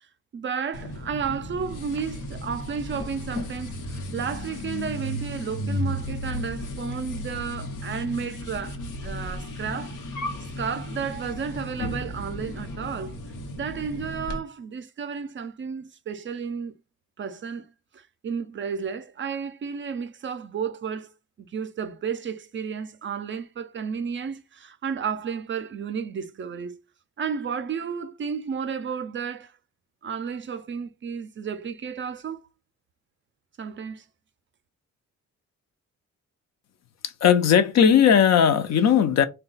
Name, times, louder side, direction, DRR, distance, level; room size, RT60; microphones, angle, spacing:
voice 1, 0.3-10.0 10.6-13.2 13.5-16.7 17.2-17.7 17.9-21.1 21.4-26.8 27.2-29.5 30.0-32.5 33.6-34.0, right 6 dB, 40° right, 0.4 m, -32 dB
sound 1, 0.7-14.4, left 1 dB, 90° left, 0.9 m, -34 dB
voice 2, 37.0-39.3, left 8 dB, 60° left, 0.5 m, -18 dB
3.7 x 2.2 x 3.9 m
wide cardioid pair, 140°, 31 cm